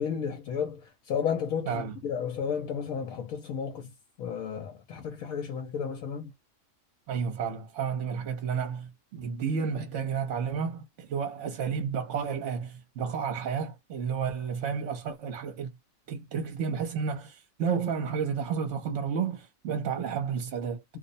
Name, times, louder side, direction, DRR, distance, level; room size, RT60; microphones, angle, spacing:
voice 1, 0.0-6.3, left 7 dB, 80° left, 1.1 m, -33 dB
voice 2, 7.1-15.7 16.1-20.8, right 6 dB, 60° right, 1.0 m, -31 dB
2.6 x 2.0 x 2.6 m
omnidirectional pair, 1.5 m